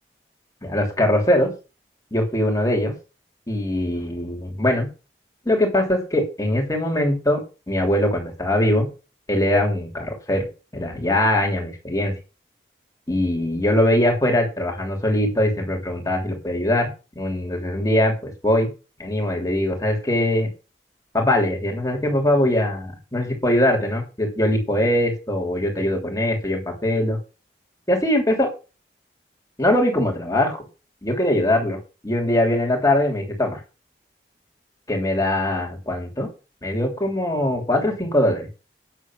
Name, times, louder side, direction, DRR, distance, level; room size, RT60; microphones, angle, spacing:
voice 1, 0.6-1.5 2.1-2.9 3.5-4.9 5.4-7.4 7.7-8.9 9.3-10.4 10.7-12.1 13.1-16.9 17.1-18.7 19.0-20.5 21.1-27.2 27.9-28.5 29.6-30.6 31.0-31.8 32.0-33.6 34.9-36.3 36.6-38.5, left 1 dB, 20° left, 1 dB, 3.0 m, -21 dB
9.3 x 7.8 x 6.2 m, 0.31 s
head